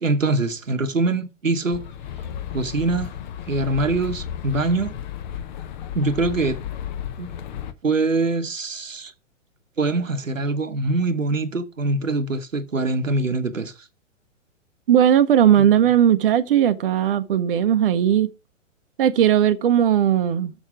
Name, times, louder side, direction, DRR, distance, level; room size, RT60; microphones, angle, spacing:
voice 1, 0.0-1.8 2.5-3.1 3.5-4.9 5.9-6.6 7.2-7.3 7.8-9.1 9.8-13.9, right 2 dB, 85° right, 1.0 m, -23 dB
sound 1, 1.7-7.7, left 9 dB, 35° left, 0.8 m, -33 dB
voice 2, 14.9-18.3 19.0-20.5, right 10 dB, 45° right, 0.7 m, -17 dB
7.1 x 6.4 x 5.0 m
figure-of-eight pair, 115°, 38 cm